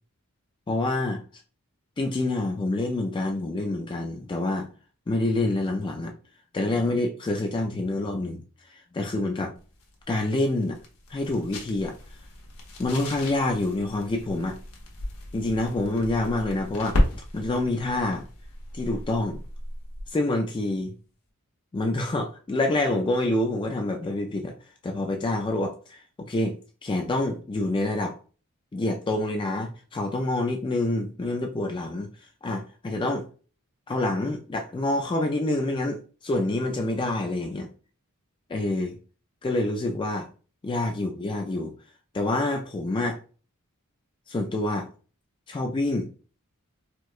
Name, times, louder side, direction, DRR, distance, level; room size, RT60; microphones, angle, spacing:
voice 1, 0.7-1.2 2.0-4.7 5.1-6.1 6.5-8.4 8.9-9.6 10.1-10.8 11.1-12.0 12.8-14.6 15.3-17.0 17.3-18.3 18.7-19.4 20.1-20.9 21.7-24.5 24.8-28.2 28.7-32.1 32.4-33.3 33.9-37.7 38.5-39.0 39.4-40.3 40.6-41.7 42.1-43.2 44.3-44.9 45.5-46.1, left 2 dB, 20° left, 0.3 m, -27 dB
sound 1, 9.6-20.2, left 1 dB, 80° left, 0.9 m, -34 dB
4.4 x 2.1 x 2.4 m
head